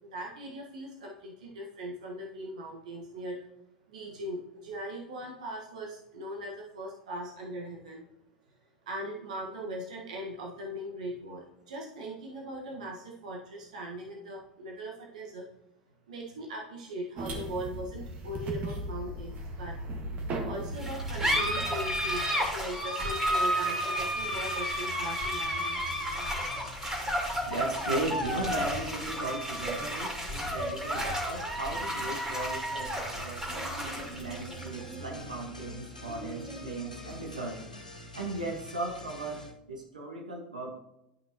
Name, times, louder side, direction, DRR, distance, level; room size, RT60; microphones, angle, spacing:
voice 1, 0.0-3.4 3.9-8.0 8.8-15.5 16.1-19.7 20.4-26.1, right 1 dB, 70° right, -1 dB, 1.5 m, -40 dB
sound 1, 17.2-22.2, right 1 dB, 40° right, 1.8 m, -37 dB
sound 2, 20.8-37.8, equal, 15° right, 2.7 m, -32 dB
sound 3, 22.0-39.5, equal, 90° left, 1.5 m, -46 dB
voice 2, 27.5-37.6 38.1-40.8, right 2 dB, 85° right, 0 dB, 1.7 m, -37 dB
11.5 x 5.6 x 3.0 m, 0.85 s
figure-of-eight pair, 80°, 4 cm